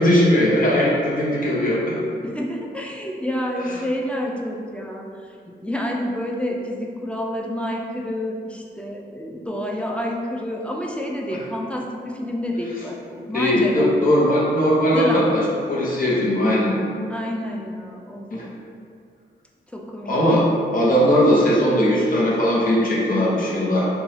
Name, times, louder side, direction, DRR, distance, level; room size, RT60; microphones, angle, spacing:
voice 1, 0.0-1.9 13.3-15.4 15.7-16.8 18.3-18.4 20.1-20.4 20.7-23.9, equal, 50° left, -6 dB, 0.8 m, -19 dB
voice 2, 2.2-13.9 14.9-15.3 17.1-18.3 19.7-20.4, left 1 dB, 5° left, -1 dB, 0.4 m, -29 dB
2.7 x 2.3 x 3.1 m, 2.3 s
cardioid pair, 45°, 19 cm